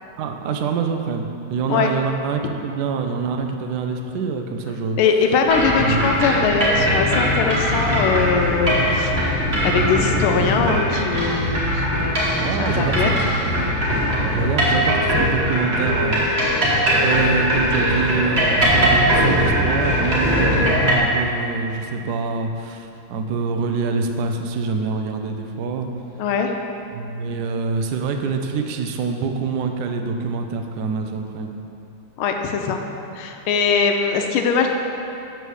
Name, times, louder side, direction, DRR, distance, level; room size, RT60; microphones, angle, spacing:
voice 1, 0.2-5.0 5.8-6.1 12.4-13.2 14.3-16.7 17.0-25.9 26.9-31.5, right 5 dB, 80° right, 4 dB, 0.9 m, -25 dB
voice 2, 5.0-9.2 9.6-13.2 13.6-13.8 26.2-26.5 32.2-32.8 33.1-34.7, left 5 dB, 80° left, 3 dB, 1.5 m, -21 dB
sound 1, 5.5-21.0, equal, 35° right, 1.1 m, -20 dB
6.8 x 4.5 x 6.4 m, 2.9 s
omnidirectional pair, 2.4 m